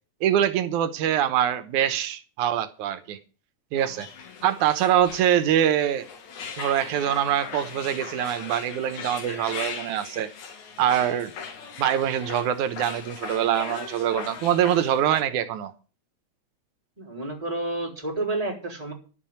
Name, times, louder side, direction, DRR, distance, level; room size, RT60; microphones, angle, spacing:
voice 1, 0.2-3.2 3.7-4.1 4.4-6.1 6.6-10.3 10.8-11.3 11.8-15.7, right 10 dB, 90° right, 2.5 m, -24 dB
sound 1, 3.8-15.2, left 6 dB, 80° left, 3.3 m, -39 dB
voice 2, 17.0-18.9, right 2 dB, 10° right, 3.8 m, -30 dB
11.5 x 7.6 x 8.7 m
omnidirectional pair, 3.3 m